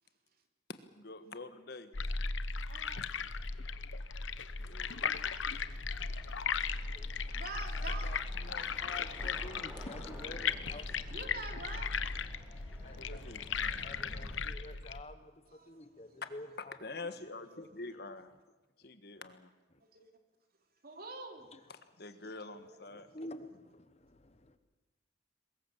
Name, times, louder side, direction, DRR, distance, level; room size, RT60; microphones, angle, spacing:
voice 1, 0.7-1.9 4.6-4.9 13.0-13.5 16.2-16.3 16.8-18.3 18.8-19.5 21.7-23.1, left 3 dB, 55° left, 10 dB, 1.6 m, -46 dB
sound 1, 1.9-15.0, left 5 dB, 90° left, 1.0 m, -37 dB
voice 2, 2.7-3.0 4.6-4.7 5.0-5.2 7.3-8.1 11.1-12.3 12.6-13.0 13.8-13.9 15.5-15.8 17.6-17.7 19.9-20.1 20.8-21.5 22.4-23.0, right 3 dB, 50° right, 4 dB, 3.1 m, -47 dB
sound 2, 4.5-14.4, equal, 10° right, 4.6 m, -54 dB
voice 3, 6.9-7.3 7.8-10.9 12.8-13.2 13.8-16.8 17.5-17.7 19.7-19.8 21.5-21.6 22.9-24.6, left 1 dB, 35° left, 10 dB, 1.3 m, -49 dB
23.0 x 21.5 x 7.5 m, 1.2 s
head